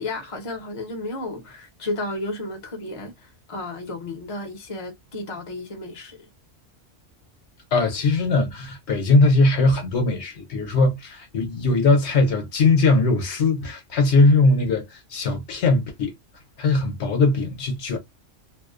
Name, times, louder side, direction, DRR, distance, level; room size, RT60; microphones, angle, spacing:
voice 1, 0.0-6.2, left 2 dB, 35° left, 0.6 m, -33 dB
voice 2, 7.7-16.1 16.6-18.0, left 3 dB, 65° left, 1.0 m, -20 dB
2.6 x 2.0 x 2.4 m
omnidirectional pair, 1.3 m